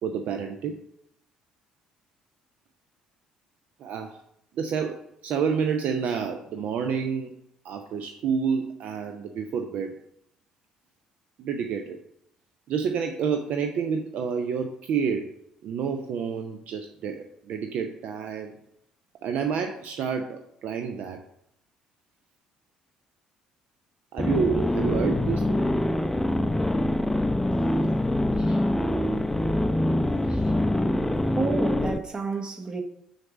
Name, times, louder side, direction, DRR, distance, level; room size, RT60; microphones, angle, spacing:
voice 1, 0.0-0.8 3.8-4.2 4.5-7.3 7.6-9.9 11.4-12.0 12.7-15.3 15.6-18.6 19.2-21.2 24.1-25.6, right 6 dB, 55° right, 0.5 m, -29 dB
sound 1, 24.2-32.0, left 1 dB, 10° left, 0.5 m, -24 dB
voice 2, 28.4-28.7 29.1-29.6 30.2-30.6 31.2-32.8, right 4 dB, 30° right, 1.1 m, -32 dB
6.5 x 4.1 x 5.9 m
figure-of-eight pair, 50°, 3 cm